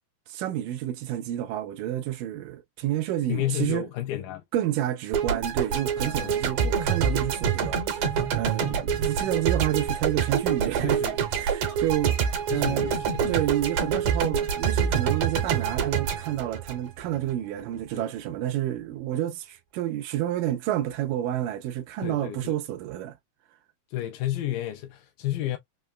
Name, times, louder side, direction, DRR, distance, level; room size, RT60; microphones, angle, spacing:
voice 1, 0.3-3.9 4.5-11.0 11.3-12.1 12.5-12.9 13.3-23.2, right 13 dB, 85° right, 1.9 m, -29 dB
voice 2, 3.3-4.4 6.0-6.3 8.6-8.8 10.8-11.3 12.5-13.4 17.9-18.0 22.0-22.6 23.9-25.6, left 13 dB, 80° left, 2.0 m, -31 dB
sound 1, 5.1-17.3, right 7 dB, 65° right, 2.1 m, -26 dB
5.6 x 2.1 x 2.3 m
omnidirectional pair, 4.3 m